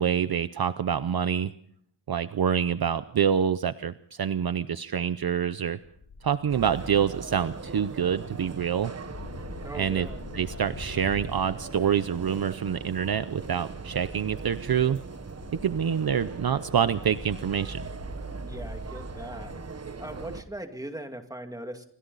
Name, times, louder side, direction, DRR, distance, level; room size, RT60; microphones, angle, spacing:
voice 1, 0.0-1.5 2.1-5.8 6.2-8.9 9.7-10.1 10.3-15.0 15.6-17.8, right 8 dB, 55° right, 13 dB, 0.7 m, -26 dB
sound 1, 5.8-20.5, left 3 dB, 80° left, 4.9 m, -45 dB
sound 2, 6.5-20.4, right 4 dB, 35° right, 1.2 m, -40 dB
voice 2, 9.6-10.3 18.4-19.5 20.0-21.9, right 1 dB, 10° right, 5 dB, 2.4 m, -40 dB
27.5 x 24.5 x 4.1 m, 0.66 s
wide cardioid pair, 155°, 45 cm